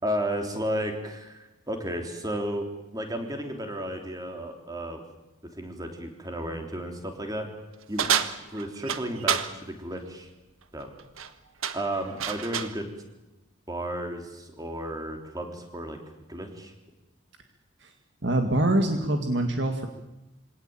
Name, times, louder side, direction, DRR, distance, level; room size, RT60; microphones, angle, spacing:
voice 1, 0.0-2.7 2.9-5.0 5.6-7.5 7.9-8.1 8.4-10.3 10.7-10.9 11.7-12.9 13.7-16.0 16.3-16.7, right 1 dB, 15° right, 4 dB, 3.3 m, -33 dB
sound 1, 8.0-9.5 11.0-11.3 11.6-12.8, right 8 dB, 75° right, 1.4 m, -28 dB
voice 2, 18.2-19.9, right 1 dB, 55° right, 5 dB, 2.0 m, -24 dB
24.0 x 18.0 x 8.9 m, 1.0 s
head